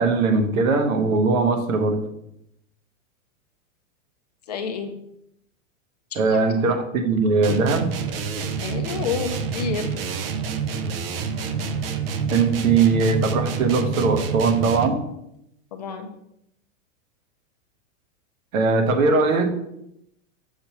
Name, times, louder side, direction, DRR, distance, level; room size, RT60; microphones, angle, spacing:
voice 1, 0.0-2.1 6.2-7.9 12.3-15.1 18.5-19.6, right 4 dB, 90° right, 6 dB, 1.2 m, -20 dB
voice 2, 4.5-4.9 6.1-6.4 8.6-9.9 15.7-16.1, left 6 dB, 35° left, 5 dB, 0.4 m, -29 dB
sound 1, 7.4-15.1, right 5 dB, 50° right, 0.5 m, -27 dB
6.4 x 3.0 x 5.7 m, 0.78 s
supercardioid pair, 180°, 39 cm